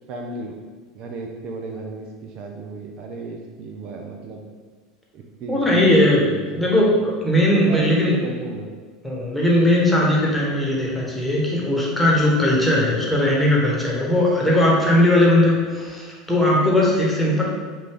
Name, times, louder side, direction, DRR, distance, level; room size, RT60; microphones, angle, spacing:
voice 1, 0.1-0.6 0.9-4.4 5.1-6.6 7.5-8.7, right 3 dB, 50° right, 2 dB, 0.5 m, -34 dB
voice 2, 5.5-6.2 6.5-8.1 9.0-17.4, left 1 dB, 5° left, -4 dB, 1.3 m, -18 dB
5.2 x 2.6 x 3.5 m, 1.4 s
hypercardioid pair, 85°, 2 cm